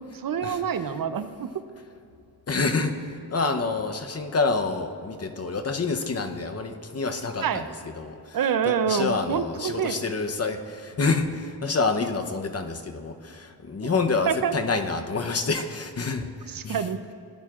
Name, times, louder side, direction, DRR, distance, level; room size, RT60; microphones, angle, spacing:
voice 1, 0.1-1.5 7.4-7.7 8.3-10.1 13.8-13.9 14.3-14.6 16.5-17.0, right 7 dB, 60° right, 11 dB, 0.6 m, -27 dB
voice 2, 2.5-3.0 3.3-7.7 8.0-8.2 8.6-16.2 16.5-16.8, left 4 dB, 40° left, 6 dB, 0.8 m, -27 dB
17.5 x 11.0 x 2.5 m, 2.5 s
cardioid pair, 75°, 39 cm